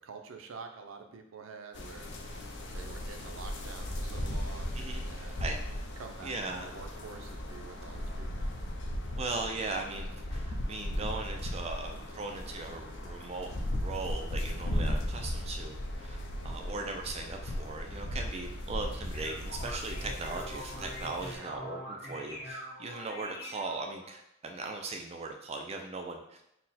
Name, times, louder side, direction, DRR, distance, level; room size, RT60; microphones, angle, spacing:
voice 1, 0.0-2.1 2.7-5.6 6.0-8.5 16.4-16.7 21.2-21.6, right 4 dB, 85° right, 5 dB, 0.5 m, -48 dB
sound 1, 1.7-21.4, left 1 dB, 60° left, 0.5 m, -37 dB
voice 2, 6.2-6.7 9.2-26.4, right 3 dB, 30° right, 3 dB, 0.4 m, -39 dB
sound 2, 19.1-24.1, equal, 85° left, 1.2 m, -44 dB
4.1 x 2.1 x 4.0 m, 0.79 s
head